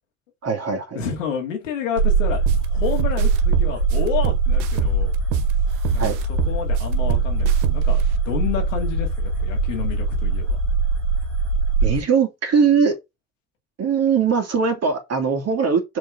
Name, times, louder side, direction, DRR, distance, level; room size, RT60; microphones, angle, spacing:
voice 1, 0.4-1.0 6.0-6.2 11.8-13.0 13.8-16.0, right 6 dB, 40° right, 2.4 m, -20 dB
voice 2, 0.9-2.4 2.7-5.1 5.9-10.6, left 7 dB, 80° left, 2.1 m, -29 dB
sound 1, 2.0-12.0, right 4 dB, 85° right, 2.3 m, -21 dB
sound 2, 2.5-2.6 3.0-5.5 5.8-8.0, right 13 dB, 70° right, 0.8 m, -26 dB
6.0 x 4.3 x 5.0 m
figure-of-eight pair, 55°, 37 cm